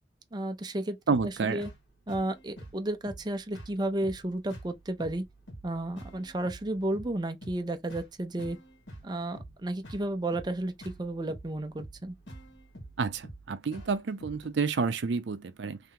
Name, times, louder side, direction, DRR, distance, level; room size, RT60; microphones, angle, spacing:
voice 1, 0.3-1.0 1.2-1.7 2.1-5.2 5.6-8.6 9.0-12.2, right 1 dB, 25° right, 0.5 m, -32 dB
sound 1, 1.1-14.5, right 1 dB, 90° left, 1.9 m, -48 dB
voice 2, 1.1-1.6 13.0-15.8, right 5 dB, 75° right, 0.5 m, -29 dB
3.2 x 3.0 x 3.7 m
head